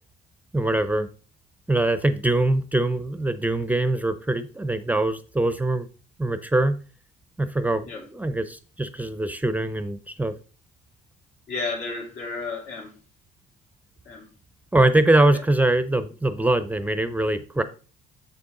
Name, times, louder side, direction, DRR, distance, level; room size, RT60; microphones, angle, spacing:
voice 1, 0.5-1.1 1.7-5.9 6.2-6.8 7.4-10.3 14.7-17.6, right 2 dB, 10° right, 12 dB, 0.5 m, -23 dB
voice 2, 11.5-12.9 14.1-14.3 15.3-15.4, left 3 dB, 75° left, -1 dB, 3.5 m, -32 dB
7.2 x 6.9 x 3.7 m, 0.36 s
cardioid pair, 110°, 17 cm